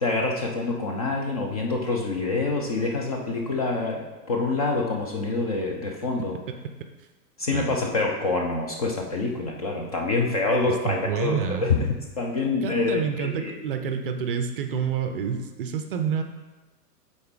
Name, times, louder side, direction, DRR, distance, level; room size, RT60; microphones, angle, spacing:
voice 1, 0.0-6.4 7.4-11.9 12.2-13.6, left 3 dB, 25° left, 1 dB, 0.4 m, -26 dB
voice 2, 10.8-11.7 12.6-16.2, right 7 dB, 35° right, 6 dB, 0.5 m, -28 dB
7.6 x 4.2 x 3.6 m, 1.2 s
figure-of-eight pair, 105°, 48 cm